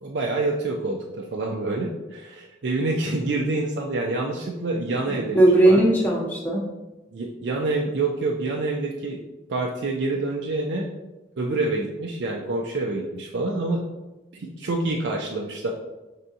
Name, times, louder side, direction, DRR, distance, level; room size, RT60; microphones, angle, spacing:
voice 1, 0.0-5.4 5.6-5.8 7.1-9.2 9.5-10.9 11.4-13.8 14.3-15.7, right 2 dB, 90° right, 0 dB, 0.5 m, -27 dB
voice 2, 4.9-6.6, right 1 dB, 10° left, -4 dB, 0.5 m, -19 dB
5.4 x 3.5 x 2.7 m, 1.1 s
head